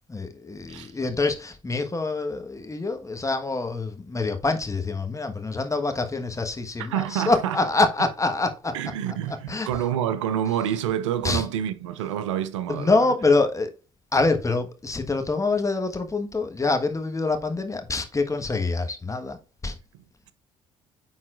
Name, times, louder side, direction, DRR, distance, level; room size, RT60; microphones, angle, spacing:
voice 1, 0.1-8.8 9.5-9.7 11.2-11.4 12.7-13.7 14.1-19.4 19.6-19.8, left 3 dB, 20° left, 1.3 m, -25 dB
voice 2, 6.8-7.6 8.7-13.1, right 10 dB, 85° right, 0.5 m, -28 dB
9.7 x 3.9 x 2.5 m
hypercardioid pair, 55°, 15 cm